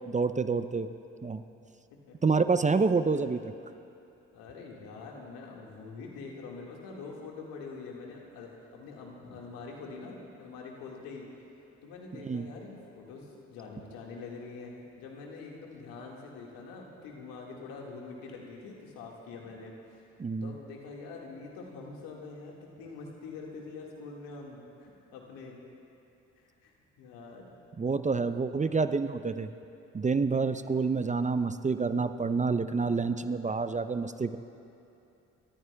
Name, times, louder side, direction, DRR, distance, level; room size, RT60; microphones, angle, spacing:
voice 1, 0.1-0.9 1.2-1.4 2.2-3.5 12.2-12.4 20.2-20.5 27.8-29.5 29.9-34.4, right 4 dB, 20° right, 11 dB, 0.6 m, -28 dB
voice 2, 4.3-11.3 11.8-20.0 20.4-25.6 26.4-27.6, left 4 dB, 75° left, -1 dB, 1.9 m, -45 dB
27.5 x 14.0 x 2.3 m, 2.8 s
hypercardioid pair, 45°, 35 cm